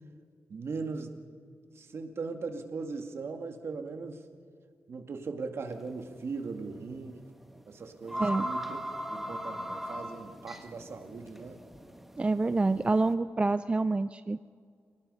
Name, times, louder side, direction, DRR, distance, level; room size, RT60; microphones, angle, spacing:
voice 1, 0.5-1.1 1.8-4.2 4.9-7.2 7.7-8.8 9.1-11.6, right 4 dB, 60° right, 5 dB, 2.2 m, -39 dB
sound 1, 5.7-6.0 6.3-6.4 7.5-7.6 7.9-13.1, equal, 5° right, 1.3 m, -39 dB
voice 2, 12.2-14.4, right 3 dB, 20° right, 13 dB, 0.4 m, -27 dB
28.5 x 19.0 x 5.6 m, 2.2 s
wide cardioid pair, 105°, 5 cm